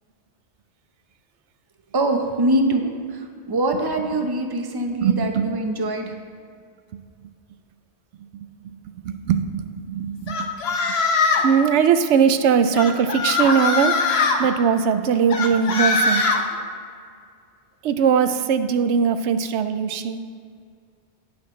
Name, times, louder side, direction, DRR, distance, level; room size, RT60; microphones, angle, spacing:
voice 1, 1.9-6.1, right 1 dB, 25° right, 4 dB, 0.7 m, -23 dB
voice 2, 5.0-5.5 8.3-10.8 11.4-16.3 17.8-20.2, right 7 dB, 85° right, 10 dB, 0.9 m, -21 dB
sound 1, 10.3-11.5 12.7-14.4 15.3-16.4, left 4 dB, 70° left, 1.1 m, -21 dB
17.5 x 5.9 x 3.2 m, 2.2 s
omnidirectional pair, 1.1 m